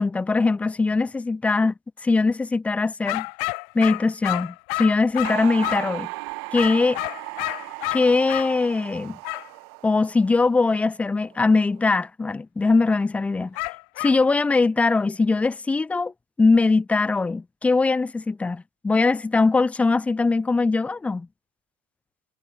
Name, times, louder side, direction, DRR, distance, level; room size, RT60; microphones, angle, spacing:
voice 1, 0.0-1.7 2.0-3.3 3.7-6.1 6.5-7.0 7.9-9.2 9.8-13.6 14.0-16.1 16.4-21.3, left 3 dB, 10° left, 0.7 m, -21 dB
sound 1, 3.1-6.0 6.6-8.5 9.2-9.5 13.6-14.2, left 38 dB, 60° left, 1.2 m, -30 dB
sound 2, 5.2-11.1 11.3-11.8, right 30 dB, 65° right, 2.6 m, -36 dB
supercardioid pair, 135°, 14 cm